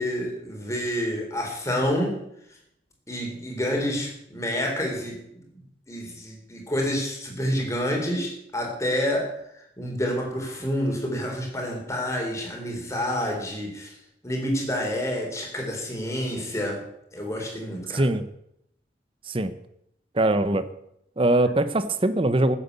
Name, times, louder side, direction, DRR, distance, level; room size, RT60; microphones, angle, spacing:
voice 1, 0.0-2.2 3.1-5.4 5.9-14.0 14.2-16.8 17.1-18.1, equal, 15° left, 1 dB, 3.8 m, -28 dB
voice 2, 17.9-18.2 19.3-19.5 20.1-20.7 21.2-22.6, right 1 dB, 30° right, 12 dB, 0.8 m, -22 dB
14.5 x 8.1 x 8.1 m, 0.76 s
head